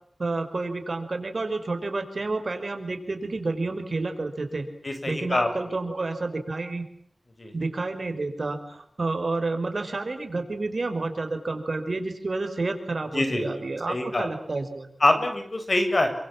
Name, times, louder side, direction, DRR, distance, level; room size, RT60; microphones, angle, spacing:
voice 1, 0.2-4.6 5.1-6.8 7.5-14.9, right 3 dB, 65° right, 7 dB, 5.7 m, -30 dB
voice 2, 4.8-5.5 7.4-7.5 13.1-13.5 13.9-14.3 15.0-16.1, left 2 dB, 50° left, 6 dB, 7.7 m, -24 dB
29.5 x 26.0 x 7.5 m, 0.64 s
wide cardioid pair, 70°, 0 cm